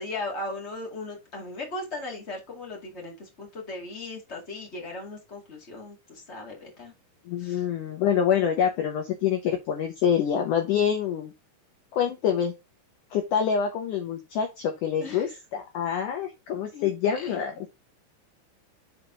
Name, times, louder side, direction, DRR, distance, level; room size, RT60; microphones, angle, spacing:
voice 1, 0.0-6.9 7.4-7.6 15.0-15.3 16.7-17.4, left 2 dB, 65° left, 0.6 m, -37 dB
voice 2, 7.2-11.3 11.9-12.5 13.1-17.7, left 8 dB, 90° left, 1.7 m, -26 dB
7.2 x 4.6 x 3.7 m
omnidirectional pair, 5.2 m